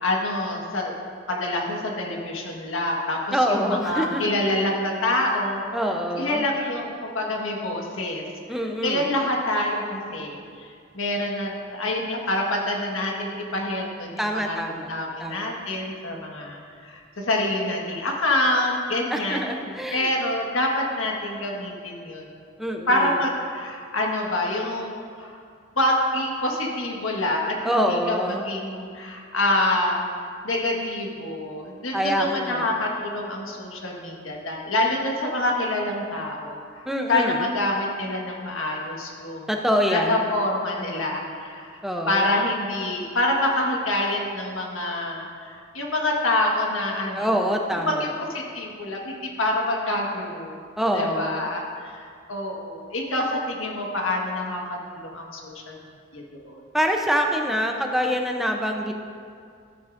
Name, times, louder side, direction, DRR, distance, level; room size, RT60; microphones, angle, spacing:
voice 1, 0.0-1.0 1.3-5.6 6.2-8.2 8.8-14.6 14.9-19.4 19.9-22.3 22.9-25.4 25.7-30.1 30.4-39.5 39.9-47.5 47.8-50.6 50.9-54.6 54.9-55.8 56.1-56.6, left 1 dB, 85° left, -1 dB, 1.5 m, -26 dB
voice 2, 3.3-4.3 5.7-6.4 8.5-9.1 14.2-15.5 19.1-20.1 22.6-23.2 27.6-28.4 31.9-32.7 36.9-37.5 39.5-40.3 41.8-42.3 47.1-48.1 50.8-51.5 56.7-58.9, equal, ahead, 2 dB, 0.6 m, -25 dB
13.5 x 9.2 x 2.6 m, 2.3 s
head